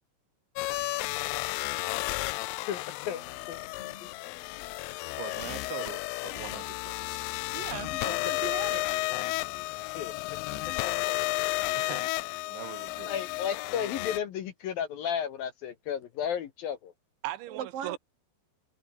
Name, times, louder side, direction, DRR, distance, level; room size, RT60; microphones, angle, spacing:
sound 1, 0.6-14.2, left 23 dB, 85° left, 2.6 m, -32 dB
voice 1, 2.7-3.2 3.5-3.6 4.0-4.1 9.9-10.1 13.1-16.9, left 9 dB, 65° left, 2.7 m, -33 dB
sound 2, 3.0-6.7 7.0-9.8 10.0-11.0, left 4 dB, 35° left, 5.9 m, -57 dB
voice 2, 5.2-7.3 11.7-12.1 12.5-13.1 17.2-18.0, right 16 dB, 80° right, 3.3 m, -40 dB
voice 3, 7.5-9.0 17.5-18.0, right 8 dB, 60° right, 2.7 m, -39 dB
omnidirectional pair, 5.5 m